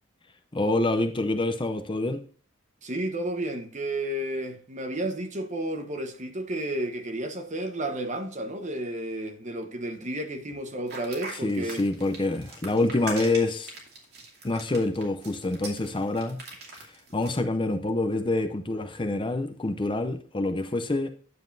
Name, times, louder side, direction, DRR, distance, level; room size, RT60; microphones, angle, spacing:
voice 1, 0.5-2.2 11.4-13.7 14.4-16.4 16.7-16.9 17.1-21.1, left 2 dB, 25° left, 0.6 m, -26 dB
voice 2, 2.8-11.9, right 1 dB, 40° right, 1.1 m, -32 dB
sound 1, 10.9-17.4, right 3 dB, 55° right, 2.5 m, -42 dB
9.5 x 7.2 x 2.6 m
head